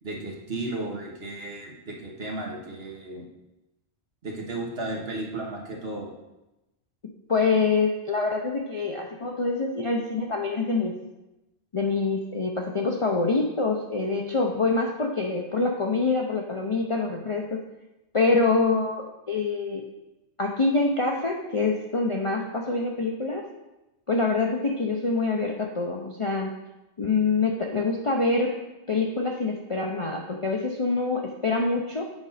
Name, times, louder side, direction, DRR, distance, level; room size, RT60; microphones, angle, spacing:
voice 1, 0.0-3.2 4.2-6.1, right 2 dB, 50° right, -1 dB, 1.5 m, -34 dB
voice 2, 7.3-10.9 11.7-17.6 18.1-19.8 20.4-23.4 24.1-26.5 27.0-28.5 28.9-32.0, left 3 dB, 40° left, 0 dB, 0.5 m, -25 dB
7.8 x 5.2 x 4.1 m, 0.97 s
omnidirectional pair, 1.3 m